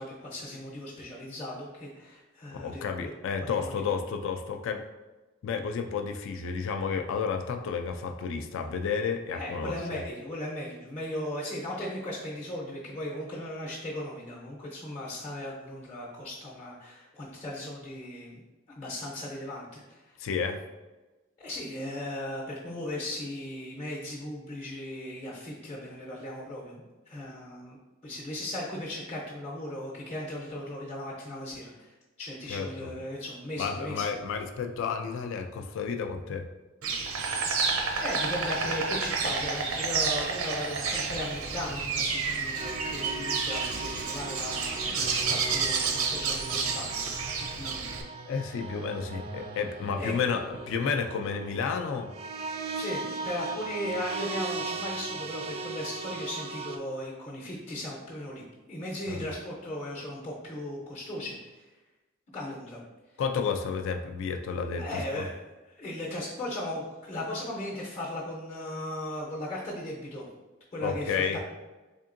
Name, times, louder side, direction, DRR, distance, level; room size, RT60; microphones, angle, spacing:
voice 1, 0.0-3.1 3.6-3.9 9.3-18.4 18.8-20.2 21.4-27.8 28.0-34.0 38.0-47.0 47.4-48.0 49.9-50.3 52.7-61.7 62.3-62.8 64.8-70.2 70.7-71.4, left 1 dB, 30° left, -3 dB, 0.6 m, -37 dB
voice 2, 2.5-4.8 5.4-10.0 20.2-20.6 32.5-32.9 33.6-36.5 48.2-52.1 59.1-59.2 63.2-64.8 65.2-65.3 70.8-71.4, left 6 dB, 65° left, 5 dB, 0.3 m, -31 dB
Insect, 36.8-48.0, right 4 dB, 80° right, 0.5 m, -30 dB
sound 1, 42.6-56.8, right 3 dB, 30° right, 0.3 m, -38 dB
3.7 x 3.5 x 2.5 m, 1.2 s
head